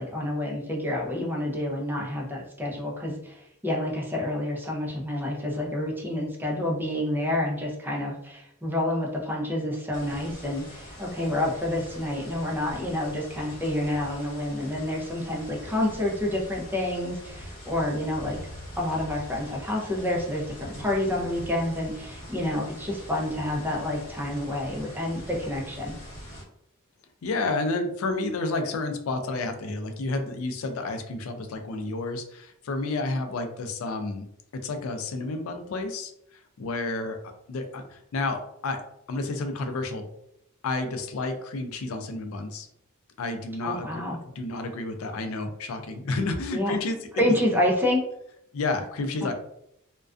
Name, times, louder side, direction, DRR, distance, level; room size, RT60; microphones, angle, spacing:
voice 1, 0.0-18.4 18.8-25.9 43.6-44.2 46.5-46.7 47.2-48.0, left 1 dB, 10° right, -2 dB, 0.5 m, -28 dB
sound 1, 9.9-26.4, equal, 40° left, 1.1 m, -43 dB
voice 2, 27.2-34.3 34.6-36.1 36.6-37.2 37.5-38.8 39.1-40.0 40.6-42.7 43.2-44.0 44.4-47.2 48.5-49.3, left 3 dB, 75° left, 6 dB, 0.4 m, -30 dB
2.3 x 2.2 x 2.4 m, 0.77 s
head